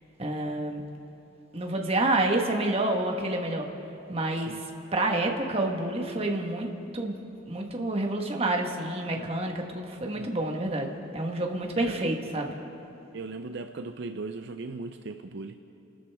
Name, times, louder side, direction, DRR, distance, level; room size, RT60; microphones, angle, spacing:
voice 1, 0.2-0.8 1.5-3.7 4.1-4.5 4.9-7.2 7.5-12.6, right 2 dB, 30° right, 2 dB, 1.4 m, -28 dB
voice 2, 4.3-4.6 9.1-9.3 10.2-10.3 11.8-12.2 13.1-15.6, right 3 dB, 60° right, 7 dB, 0.5 m, -38 dB
30.0 x 13.0 x 3.5 m, 2.9 s
head